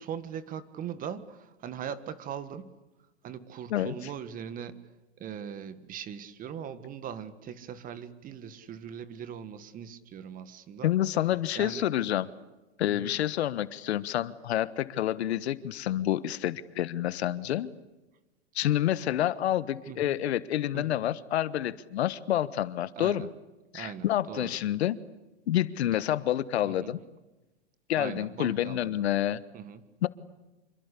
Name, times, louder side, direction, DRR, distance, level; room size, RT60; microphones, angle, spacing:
voice 1, 0.0-2.7 3.2-4.9 5.2-10.9 11.5-11.9 12.9-13.2 19.9-20.1 20.7-21.0 23.0-23.3 23.7-24.6 25.9-26.0 26.6-27.0 27.9-29.1 29.5-29.9, right 8 dB, 25° right, 13 dB, 1.7 m, -40 dB
voice 2, 10.8-12.3 12.8-17.7 18.5-23.3 23.7-25.0 25.5-27.0 27.9-29.4 30.0-30.1, left 12 dB, 70° left, 15 dB, 1.4 m, -28 dB
27.5 x 23.5 x 8.5 m, 1.1 s
hypercardioid pair, 140°, 33 cm